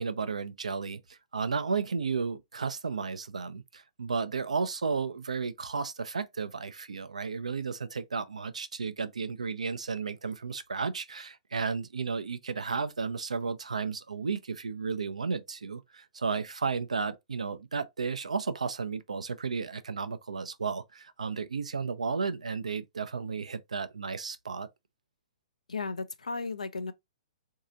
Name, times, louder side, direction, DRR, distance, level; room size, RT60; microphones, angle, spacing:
voice 1, 0.0-24.7, right 5 dB, 75° right, 0.5 m, -33 dB
voice 2, 25.7-26.9, left 4 dB, 80° left, 0.5 m, -35 dB
3.9 x 2.7 x 2.6 m
figure-of-eight pair, 115°, 4 cm